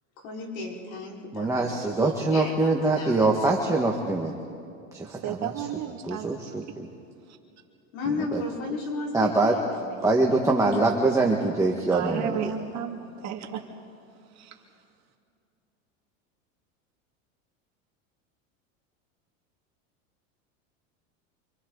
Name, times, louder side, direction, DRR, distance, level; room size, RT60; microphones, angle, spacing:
voice 1, 0.2-3.3 7.9-10.0, left 3 dB, 80° left, -3 dB, 5.3 m, -34 dB
voice 2, 1.3-4.3 4.9-5.7 6.0-6.9 8.1-8.4 9.1-9.6 10.0-12.5, right 3 dB, 10° right, -1 dB, 1.9 m, -24 dB
voice 3, 5.0-6.3 11.9-13.6 14.4-14.6, right 8 dB, 45° right, 1 dB, 2.6 m, -33 dB
28.5 x 26.0 x 4.1 m, 2.6 s
supercardioid pair, 110°, 39 cm